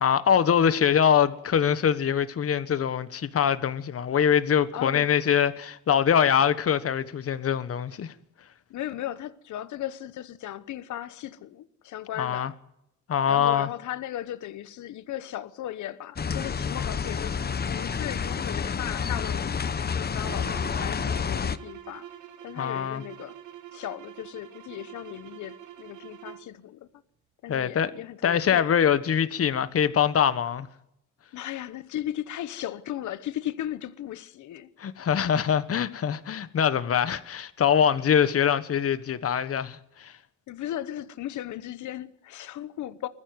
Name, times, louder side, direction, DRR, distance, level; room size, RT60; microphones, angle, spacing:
voice 1, 0.0-8.1 12.2-12.5 13.1-13.7 22.6-23.0 27.5-27.9 28.2-30.7 34.8-40.1, left 8 dB, 50° left, 1.4 m, -23 dB
voice 2, 4.7-5.1 8.7-12.5 13.3-22.1 22.4-23.4 23.7-26.9 27.4-28.7 31.3-34.7 40.5-43.1, left 12 dB, 75° left, 1.1 m, -36 dB
sound 1, 16.2-21.6, left 6 dB, 35° left, 0.9 m, -29 dB
sound 2, 20.2-26.5, right 11 dB, 75° right, 1.7 m, -45 dB
20.5 x 14.5 x 9.4 m
cardioid pair, 90°, 30 cm